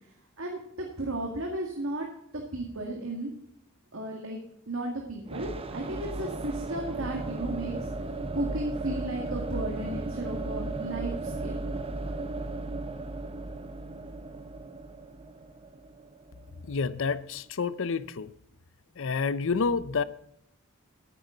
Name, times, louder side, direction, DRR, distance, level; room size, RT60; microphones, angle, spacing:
voice 1, 0.4-2.1 2.3-3.3 3.9-4.4 4.7-11.6, right 1 dB, 70° right, 1 dB, 2.0 m, -34 dB
sound 1, 5.3-17.1, right 2 dB, 25° right, 0.8 m, -36 dB
voice 2, 16.6-18.3 19.0-20.0, left 5 dB, 65° left, 15 dB, 0.6 m, -29 dB
14.0 x 9.4 x 3.9 m, 0.75 s
head